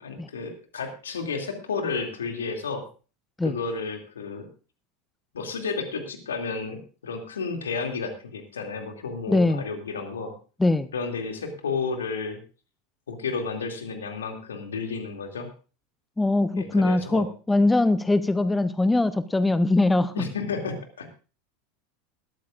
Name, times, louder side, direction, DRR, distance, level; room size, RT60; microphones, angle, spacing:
voice 1, 0.0-2.8 3.4-4.5 5.3-10.3 10.9-12.4 13.1-15.5 16.6-17.3 20.2-21.1, left 4 dB, 75° left, 4 dB, 2.6 m, -32 dB
voice 2, 9.3-9.6 10.6-10.9 16.2-20.2, left 2 dB, 10° left, 15 dB, 0.7 m, -22 dB
20.5 x 13.5 x 2.5 m, 0.35 s
figure-of-eight pair, 80°, 0 cm